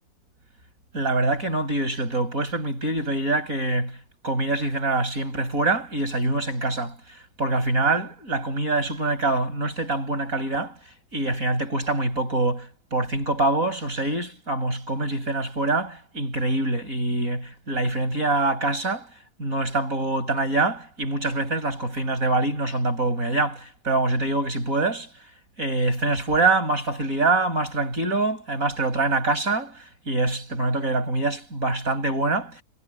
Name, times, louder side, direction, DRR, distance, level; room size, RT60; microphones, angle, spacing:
voice 1, 0.9-4.0 4.2-6.9 7.4-10.8 11.1-19.1 19.4-25.1 25.6-32.6, right 2 dB, 45° right, 8.3 m, -25 dB
omnidirectional pair, 2.0 m